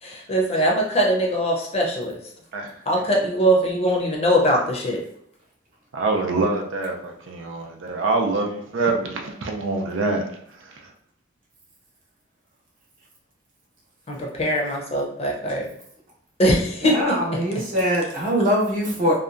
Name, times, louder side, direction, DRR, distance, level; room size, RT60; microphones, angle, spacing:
voice 1, 0.0-2.2 2.9-5.0 14.1-15.7 16.4-17.2, equal, 35° left, -1 dB, 0.5 m, -21 dB
voice 2, 5.9-10.2, right 3 dB, 85° right, 2 dB, 0.5 m, -25 dB
voice 3, 16.8-19.2, equal, 45° right, -4 dB, 0.9 m, -22 dB
2.7 x 2.2 x 2.4 m, 0.67 s
head